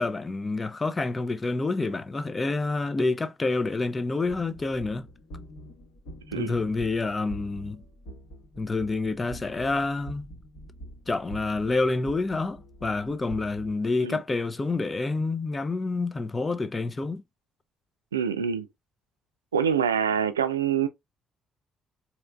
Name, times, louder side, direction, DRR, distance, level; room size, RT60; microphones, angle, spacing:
voice 1, 0.0-5.1 6.4-7.8 8.6-10.3 11.1-17.2, left 3 dB, 30° left, 0.6 m, -28 dB
sound 1, 4.2-13.7, right 1 dB, 65° left, 1.4 m, -45 dB
voice 2, 18.1-18.7 19.5-20.9, right 7 dB, 85° right, 0.4 m, -25 dB
4.3 x 2.9 x 2.3 m
figure-of-eight pair, 45°, 0 cm